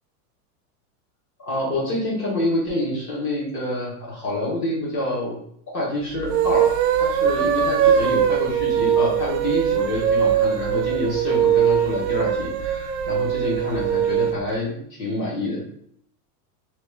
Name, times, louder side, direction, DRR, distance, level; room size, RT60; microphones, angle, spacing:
voice 1, 1.4-5.4 5.7-6.7 7.0-15.6, left 1 dB, 25° left, -5 dB, 0.9 m, -27 dB
sound 1, 6.2-14.4, right 9 dB, 80° right, 0.6 m, -21 dB
2.9 x 2.4 x 3.0 m, 0.66 s
supercardioid pair, 175°, 46 cm